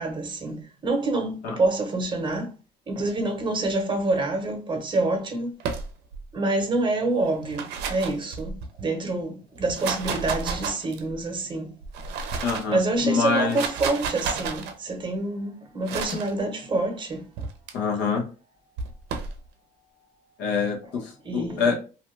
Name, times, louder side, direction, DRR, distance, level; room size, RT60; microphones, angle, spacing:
voice 1, 0.0-2.5 2.9-5.5 6.3-11.8 12.7-17.3 21.2-21.7, right 2 dB, 30° right, 0.9 m, -27 dB
sound 1, 5.6-6.3 7.3-8.8 9.6-11.2 11.8-12.8 13.3-14.7 15.9-16.3 17.4-17.7 18.8-19.4, right 5 dB, 80° right, 0.6 m, -32 dB
voice 2, 12.4-13.6 17.7-18.2 20.4-21.8, left 5 dB, 80° left, 1.0 m, -25 dB
2.7 x 2.1 x 3.2 m
cardioid pair, 110°, 17 cm